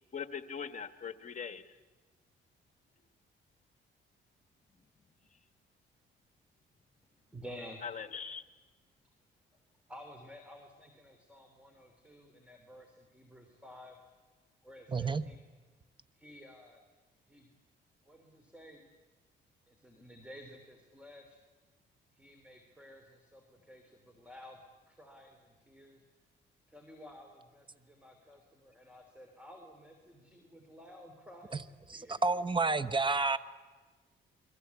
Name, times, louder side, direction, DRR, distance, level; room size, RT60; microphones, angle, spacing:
voice 1, 0.1-1.8 7.8-8.4, left 6 dB, 40° left, 10 dB, 1.6 m, -41 dB
voice 2, 7.2-7.8 9.9-14.0 14.6-15.4 16.1-16.8 17.2-17.5 18.0-18.8 19.7-21.4 22.1-26.0 26.7-32.2, equal, 5° right, 5 dB, 3.3 m, -53 dB
voice 3, 14.9-15.2 31.5-31.6 31.9-33.4, right 3 dB, 25° right, 14 dB, 1.1 m, -30 dB
29.0 x 22.0 x 8.4 m, 1.3 s
cardioid pair, 90°, 20 cm